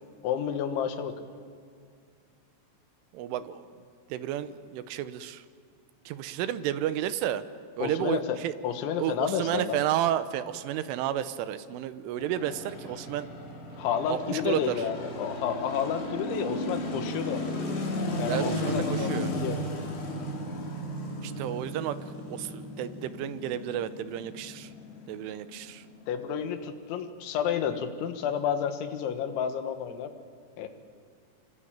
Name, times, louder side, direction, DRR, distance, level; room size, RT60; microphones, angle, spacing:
voice 1, 0.2-1.3 7.8-8.4 8.6-9.8 13.8-17.5 18.2-19.6 26.1-30.1 30.6-30.7, left 8 dB, 70° left, 7 dB, 3.7 m, -30 dB
voice 2, 3.1-3.6 4.1-5.4 6.1-7.4 7.8-8.5 9.0-13.3 14.1-14.8 18.3-19.3 21.2-22.0 22.3-24.7 25.1-25.8, right 11 dB, 80° right, 12 dB, 3.4 m, -31 dB
sound 1, 12.2-26.4, left 1 dB, 55° left, 6.2 m, -35 dB
26.5 x 25.0 x 8.9 m, 2.2 s
omnidirectional pair, 5.8 m